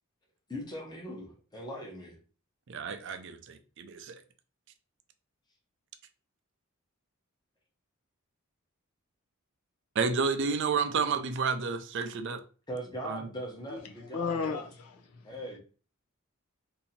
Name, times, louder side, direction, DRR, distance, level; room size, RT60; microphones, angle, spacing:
voice 1, 0.5-2.2 12.7-14.7 15.2-15.6, equal, 20° left, 0.9 m, -40 dB
voice 2, 2.7-4.2 10.0-12.4 13.0-13.3, right 5 dB, 55° right, 0.4 m, -30 dB
voice 3, 14.1-14.7, left 5 dB, 85° left, 0.5 m, -31 dB
2.7 x 2.7 x 4.1 m
head